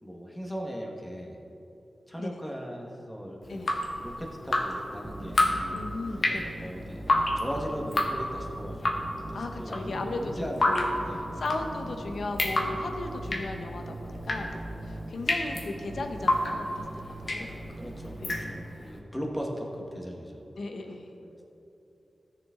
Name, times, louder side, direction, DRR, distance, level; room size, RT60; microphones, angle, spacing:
voice 1, 0.0-1.4 2.1-5.8 6.6-7.1 7.4-10.6 11.0-11.2 15.4-15.6 17.4-20.4, equal, 10° left, 0 dB, 1.4 m, -38 dB
voice 2, 2.2-2.5 3.5-3.8 5.7-6.7 9.3-14.5 14.8-17.5 18.2-18.5 20.6-21.1, left 2 dB, 75° left, 5 dB, 0.9 m, -36 dB
Drip, 3.4-18.9, left 1 dB, 55° left, 1.2 m, -30 dB
sound 1, 5.0-18.6, right 1 dB, 30° right, 0.7 m, -41 dB
15.0 x 6.9 x 3.8 m, 3.0 s
wide cardioid pair, 95°, 0 cm